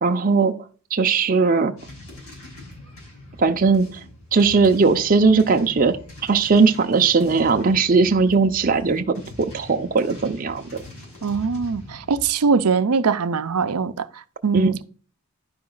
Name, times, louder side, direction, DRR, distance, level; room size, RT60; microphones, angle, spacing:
voice 1, 0.0-0.5 0.9-1.7 3.4-4.0 4.3-6.0 6.2-9.0 9.4-10.8 14.5-14.8, right 4 dB, 40° right, 0.6 m, -18 dB
sound 1, 1.8-12.3, left 1 dB, 80° left, 5.3 m, -42 dB
voice 2, 11.2-14.8, right 5 dB, 80° right, 0.6 m, -22 dB
11.5 x 5.2 x 3.9 m
head